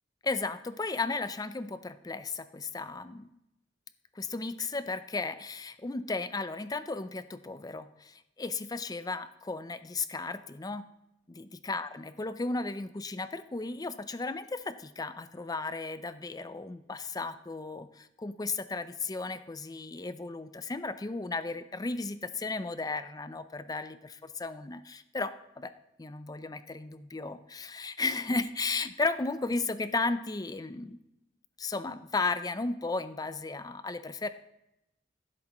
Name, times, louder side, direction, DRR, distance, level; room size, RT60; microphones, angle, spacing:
voice 1, 0.2-3.3 4.2-10.9 11.3-25.7 26.0-31.0 31.6-34.3, left 3 dB, 20° left, 12 dB, 0.5 m, -35 dB
14.5 x 7.8 x 3.0 m, 0.86 s
head